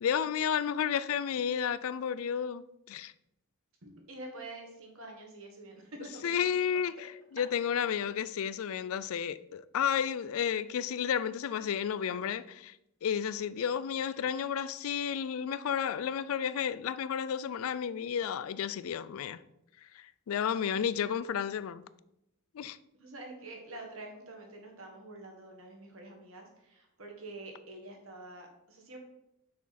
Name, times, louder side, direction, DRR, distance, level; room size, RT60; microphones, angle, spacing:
voice 1, 0.0-3.1 6.2-7.1 7.3-12.8 13.0-19.4 19.9-21.8 22.5-22.8, left 8 dB, 70° left, 0.3 m, -32 dB
voice 2, 3.8-6.5 22.9-29.0, right 2 dB, 65° right, 1.7 m, -47 dB
6.1 x 6.0 x 4.2 m
head